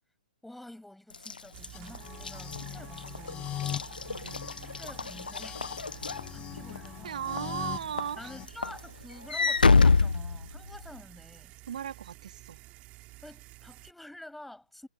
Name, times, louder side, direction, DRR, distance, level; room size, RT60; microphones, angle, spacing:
voice 1, 0.4-3.8 4.7-5.6 5.9-7.2 8.2-11.5 13.2-14.9, left 1 dB, ahead, 7.7 m, -49 dB
Walk footsteps / Slam, 1.1-6.9 7.4-7.6 8.0-11.0, left 4 dB, 75° left, 0.8 m, -27 dB
sound 1, 1.5-13.9, right 19 dB, 25° right, 5.2 m, -50 dB
sound 2, 1.7-8.5, left 12 dB, 20° left, 6.6 m, -42 dB
voice 2, 4.1-4.4 7.0-8.3 11.7-12.6, right 9 dB, 55° right, 2.4 m, -37 dB
figure-of-eight pair, 120°, 5 cm